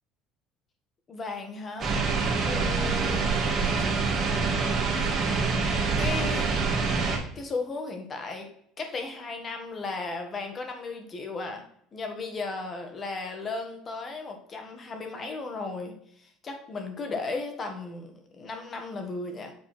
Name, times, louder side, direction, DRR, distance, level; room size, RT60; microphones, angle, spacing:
voice 1, 1.1-2.0 2.4-3.3 6.0-6.5 7.4-8.5 8.8-11.6 11.9-19.5, left 3 dB, 30° left, 4 dB, 1.8 m, -35 dB
sound 1, 1.8-7.2, right 4 dB, 40° right, 2.0 m, -26 dB
7.8 x 4.2 x 4.5 m, 0.66 s
cardioid pair, 125°, 0 cm